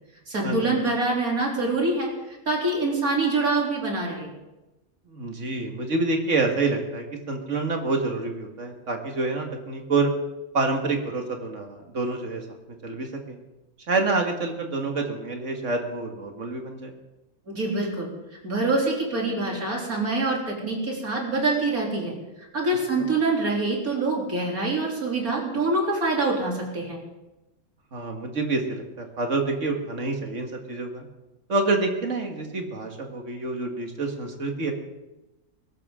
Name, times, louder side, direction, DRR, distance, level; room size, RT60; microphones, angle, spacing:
voice 1, 0.3-2.1 2.5-4.3 17.5-18.1 18.4-22.1 22.5-27.0, right 2 dB, 85° right, -2 dB, 3.8 m, -25 dB
voice 2, 5.1-10.1 10.5-12.4 12.8-13.4 13.9-16.9 27.9-31.1 31.5-34.7, right 3 dB, 55° right, 3 dB, 2.1 m, -27 dB
21.5 x 12.5 x 3.7 m, 1.0 s
omnidirectional pair, 1.5 m